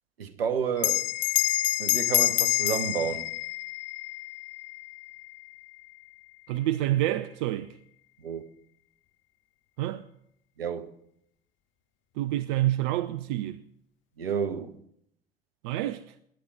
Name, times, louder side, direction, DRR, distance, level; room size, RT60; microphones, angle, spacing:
voice 1, 0.2-1.1 1.8-3.3 8.2-8.4 10.6-10.9 14.2-14.8, right 7 dB, 80° right, 1.0 m, -30 dB
Bell, 0.8-5.6, left 16 dB, 40° left, 0.6 m, -28 dB
voice 2, 6.5-7.7 9.8-10.0 12.2-13.6 15.6-16.1, right 14 dB, 60° right, 0.6 m, -28 dB
20.0 x 10.0 x 4.9 m
figure-of-eight pair, 65°, 29 cm